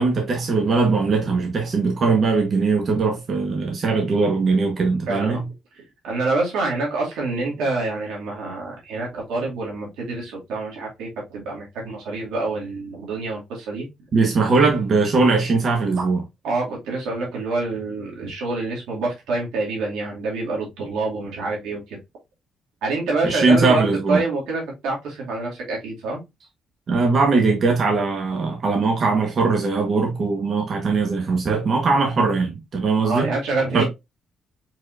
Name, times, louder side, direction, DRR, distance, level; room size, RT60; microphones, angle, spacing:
voice 1, 0.0-5.4 14.1-16.2 23.2-24.2 26.9-33.3 33.7-33.8, right 4 dB, 50° right, 1.2 m, -20 dB
voice 2, 5.1-5.5 5.8-13.9 16.4-22.0 22.8-26.2 33.0-33.8, right 3 dB, 90° right, 2.3 m, -26 dB
4.8 x 4.1 x 2.5 m
cardioid pair, 90°, 0 cm